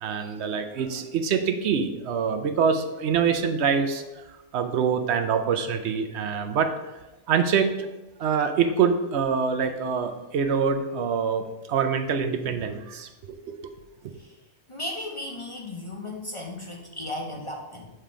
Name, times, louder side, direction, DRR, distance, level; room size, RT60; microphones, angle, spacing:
voice 1, 0.0-4.2 4.5-6.7 7.3-7.9 8.2-13.7, right 6 dB, 70° right, 7 dB, 0.9 m, -25 dB
voice 2, 14.7-17.9, left 1 dB, 35° left, 0 dB, 0.6 m, -35 dB
7.4 x 3.3 x 4.9 m, 1.0 s
omnidirectional pair, 1.2 m